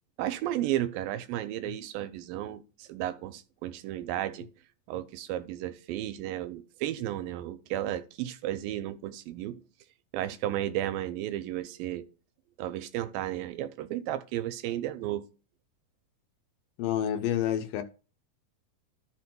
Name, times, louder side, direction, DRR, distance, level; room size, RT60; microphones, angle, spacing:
voice 1, 0.2-4.5 4.9-9.6 10.1-12.1 12.6-15.2, right 13 dB, 85° right, 2.3 m, -33 dB
voice 2, 16.8-17.8, left 10 dB, 80° left, 2.2 m, -28 dB
13.5 x 5.9 x 2.2 m
omnidirectional pair, 4.0 m